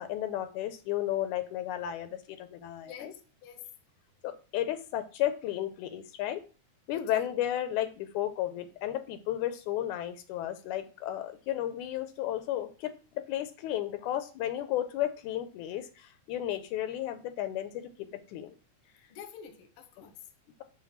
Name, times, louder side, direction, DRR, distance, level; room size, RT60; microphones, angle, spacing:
voice 1, 0.0-3.1 4.2-6.4 6.9-12.9 13.3-18.5, left 12 dB, 85° left, 2.2 m, -33 dB
voice 2, 2.8-3.6 6.9-7.3 19.1-20.2, left 8 dB, 65° left, 1.4 m, -48 dB
7.7 x 2.7 x 5.6 m
omnidirectional pair, 3.4 m